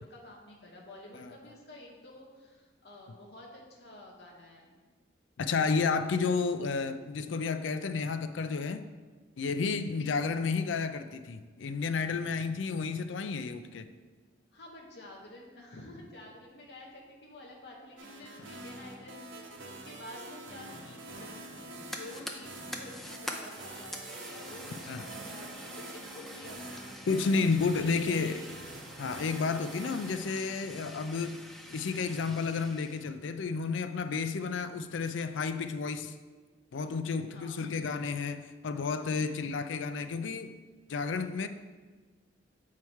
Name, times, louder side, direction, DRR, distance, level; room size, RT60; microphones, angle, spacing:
voice 1, 0.0-4.9 9.7-10.2 14.5-21.3 21.8-27.1 27.5-28.5 37.3-37.7, left 1 dB, 55° left, -2 dB, 1.0 m, -50 dB
voice 2, 5.4-8.8 9.4-13.9 24.9-25.0 27.1-28.4 29.0-31.4 31.7-36.1 36.7-40.5 40.9-41.5, left 4 dB, 80° left, 10 dB, 0.4 m, -31 dB
sound 1, 18.0-30.2, right 2 dB, 85° right, 1.0 m, -46 dB
Fire, 21.5-33.1, equal, ahead, 0.4 m, -46 dB
7.1 x 4.6 x 4.6 m, 1.4 s
head